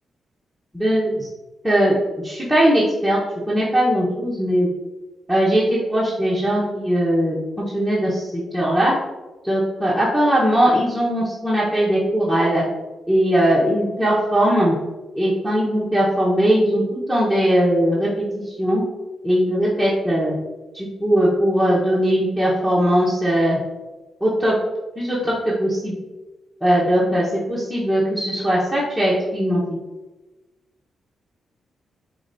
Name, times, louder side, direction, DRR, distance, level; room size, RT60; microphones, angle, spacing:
voice 1, 0.7-1.3 1.6-3.2 3.5-4.7 5.3-7.4 7.7-8.9 9.4-12.6 13.1-14.8 15.1-18.8 19.2-20.4 20.7-23.6 24.2-24.5 25.0-26.0 26.6-29.8, equal, ahead, -8 dB, 1.1 m, -19 dB
5.0 x 3.7 x 2.7 m, 1.1 s
cardioid pair, 75°, 0 cm